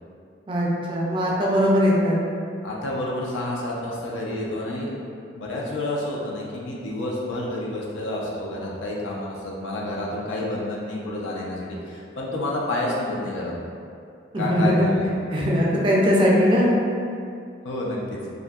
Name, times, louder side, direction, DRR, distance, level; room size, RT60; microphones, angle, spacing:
voice 1, 0.5-2.2 14.3-14.9 15.3-16.7, equal, 25° right, -4 dB, 0.3 m, -20 dB
voice 2, 2.6-4.9 5.3-13.6 14.4-15.1 17.6-18.2, left 1 dB, 85° left, -4 dB, 0.5 m, -29 dB
2.6 x 2.4 x 2.3 m, 2.4 s
head